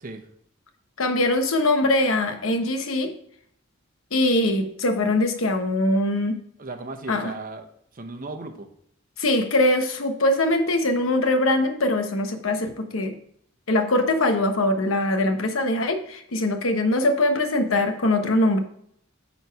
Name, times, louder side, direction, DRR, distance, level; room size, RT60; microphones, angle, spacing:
voice 1, 1.0-3.1 4.1-6.4 7.1-7.3 9.2-13.2 13.7-18.6, left 1 dB, 85° left, 7 dB, 1.0 m, -22 dB
voice 2, 6.6-7.7 7.9-8.7, right 3 dB, 45° right, 7 dB, 0.8 m, -36 dB
9.0 x 4.1 x 4.6 m, 0.69 s
head